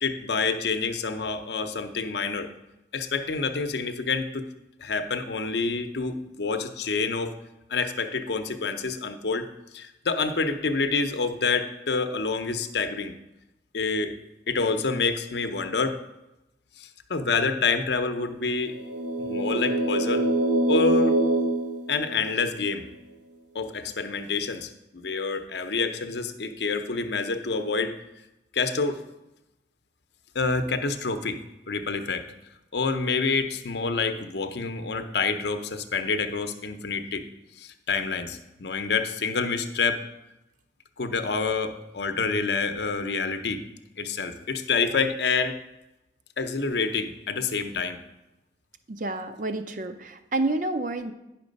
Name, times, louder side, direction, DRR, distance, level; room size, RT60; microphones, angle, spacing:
voice 1, 0.0-2.5 2.9-4.5 4.8-7.4 7.7-9.5 9.7-13.1 13.7-14.2 14.5-16.0 16.8-18.7 19.2-20.3 20.7-21.2 21.9-22.9 23.5-27.9 28.5-29.0 30.3-31.4 31.7-32.3 32.7-37.2 37.6-40.0 41.0-43.6 44.0-45.6 46.4-48.0, left 4 dB, 65° left, 8 dB, 0.7 m, -27 dB
sound 1, 18.7-22.6, right 2 dB, 85° right, 1.1 m, -25 dB
voice 2, 48.9-51.1, right 2 dB, 45° right, 9 dB, 0.6 m, -29 dB
10.0 x 5.9 x 5.2 m, 0.95 s
head